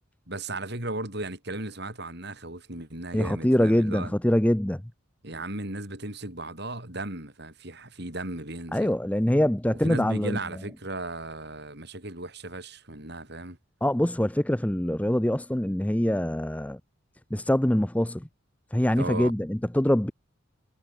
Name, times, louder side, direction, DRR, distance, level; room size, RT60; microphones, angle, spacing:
voice 1, 0.3-4.1 5.2-8.9 9.8-13.6 19.0-19.4, right 2 dB, 50° right, 5.6 m, -36 dB
voice 2, 3.1-4.8 8.7-10.4 13.8-16.8 17.3-18.2 18.7-20.1, left 1 dB, 5° left, 0.6 m, -24 dB
head